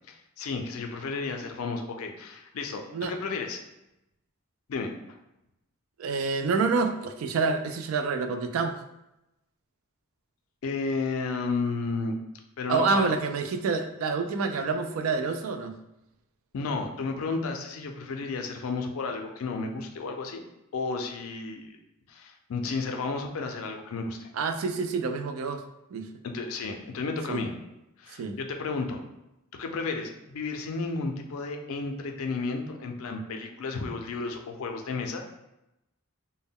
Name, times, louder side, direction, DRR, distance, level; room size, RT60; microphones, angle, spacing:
voice 1, 0.1-3.6 4.7-4.9 10.6-12.2 12.6-13.1 16.5-20.4 20.7-21.8 22.1-24.3 26.2-27.5 28.0-29.0 29.5-35.3, left 4 dB, 90° left, 4 dB, 0.4 m, -32 dB
voice 2, 6.0-8.7 12.7-15.8 24.4-25.6 25.9-26.1 27.3-27.5 28.2-28.4, right 4 dB, 80° right, 7 dB, 0.3 m, -27 dB
2.1 x 2.1 x 3.5 m, 0.91 s
head